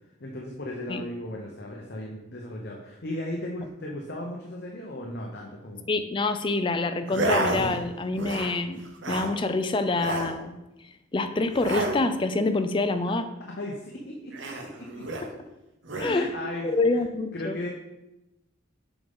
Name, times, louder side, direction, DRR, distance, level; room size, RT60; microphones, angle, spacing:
voice 1, 0.2-5.9 13.6-15.0 16.0-17.1 17.3-17.7, left 1 dB, 50° left, -1 dB, 0.7 m, -36 dB
voice 2, 5.9-10.6 11.1-13.2 15.2-15.3 16.0-16.4 16.7-17.6, left 3 dB, 25° left, 9 dB, 0.4 m, -26 dB
sound 1, 7.1-7.8 8.1-8.6 8.8-9.3 9.9-10.3 11.5-12.0 14.3-15.3 15.8-16.1, right 2 dB, 65° right, 0.9 m, -30 dB
7.0 x 5.2 x 3.6 m, 0.97 s
head